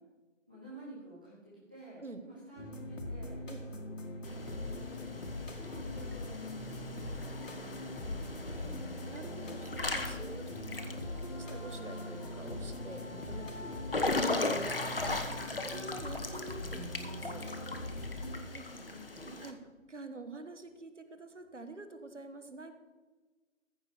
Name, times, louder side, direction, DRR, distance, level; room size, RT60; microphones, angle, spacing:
voice 1, 0.5-5.1 5.5-7.7 10.5-10.9 13.5-14.0 15.4-15.8 18.1-19.4, right 1 dB, 5° right, -11 dB, 1.1 m, -53 dB
sound 1, 2.6-18.5, left 1 dB, 70° left, 2.2 m, -42 dB
Water / Splash splatter / Drip, 4.2-19.5, left 2 dB, 45° left, 1.1 m, -39 dB
voice 2, 9.1-10.5 10.8-11.0 11.4-13.5 14.1-15.4 15.7-17.5 18.5-18.6 19.4-19.6 19.9-22.7, right 2 dB, 65° right, 8 dB, 1.4 m, -47 dB
14.5 x 5.1 x 6.8 m, 1.3 s
figure-of-eight pair, 165°, 39 cm